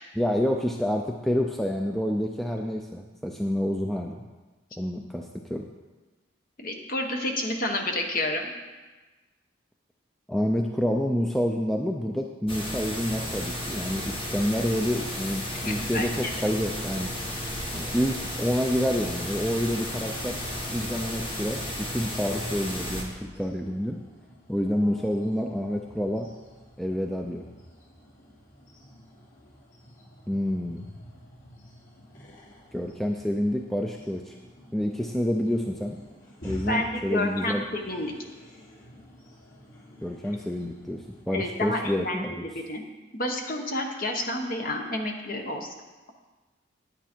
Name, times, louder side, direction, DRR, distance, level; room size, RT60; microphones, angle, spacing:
voice 1, 0.2-4.2 4.8-5.7 10.3-17.1 17.7-20.4 20.7-24.0 24.5-26.3 26.8-27.4 30.3-30.8 32.7-34.3 34.7-36.0 36.4-37.6 40.0-42.5, equal, ahead, 2 dB, 0.4 m, -28 dB
voice 2, 6.6-8.5 15.6-16.1 36.7-38.1 41.3-42.8 43.1-45.7, left 1 dB, 45° left, 2 dB, 1.2 m, -30 dB
sound 1, 12.5-23.0, equal, 25° left, 1.4 m, -33 dB
sound 2, 21.8-41.2, equal, 80° left, 3.2 m, -49 dB
9.9 x 9.4 x 4.5 m, 1.2 s
head